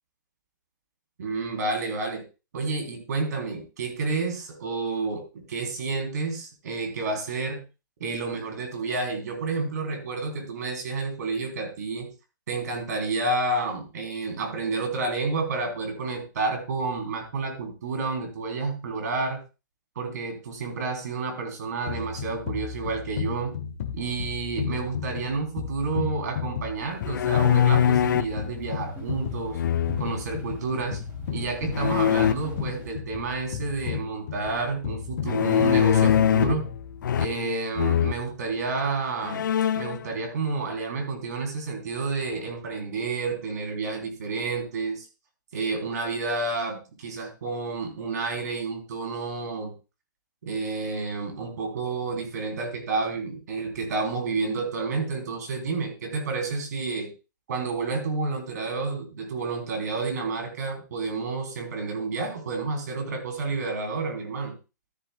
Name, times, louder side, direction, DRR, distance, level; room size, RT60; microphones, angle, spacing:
voice 1, 1.2-2.2 2.5-7.6 8.0-12.1 12.5-19.4 20.0-23.6 23.9-29.6 30.0-31.0 31.3-36.7 37.2-39.4 39.8-45.1 45.5-49.7 50.4-57.1 57.5-64.5, right 3 dB, 60° right, 3 dB, 3.5 m, -30 dB
sound 1, 21.9-37.2, left 8 dB, 40° left, 1.3 m, -34 dB
sound 2, 26.8-32.9, right 1 dB, 20° right, 3.0 m, -42 dB
sound 3, 27.0-28.4 29.5-30.2 31.7-32.3 35.3-36.6 37.0-37.5 37.8-38.2 38.8-38.9 39.2-40.0, left 9 dB, 75° left, 0.4 m, -22 dB
13.0 x 11.5 x 2.3 m, 0.30 s
hypercardioid pair, 170°, 10 cm